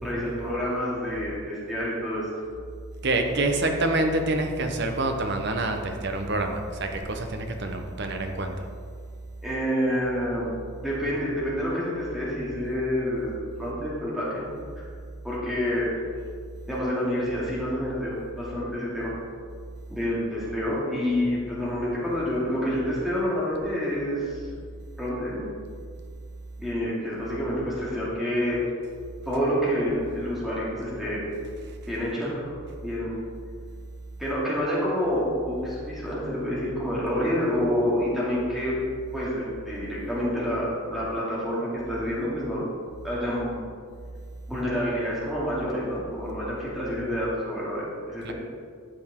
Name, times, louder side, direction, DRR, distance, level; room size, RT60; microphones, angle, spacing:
voice 1, 0.0-2.3 9.4-14.5 15.2-15.9 16.7-18.1 18.4-19.1 19.9-24.4 25.0-25.4 26.6-28.6 29.3-31.2 31.9-32.5 32.8-33.1 34.2-38.8 39.1-42.6 43.0-43.6 44.5-48.3, equal, ahead, -8 dB, 2.4 m, -28 dB
voice 2, 3.0-8.6 48.2-48.3, right 2 dB, 50° right, 4 dB, 0.9 m, -27 dB
12.0 x 6.9 x 3.7 m, 2.1 s
head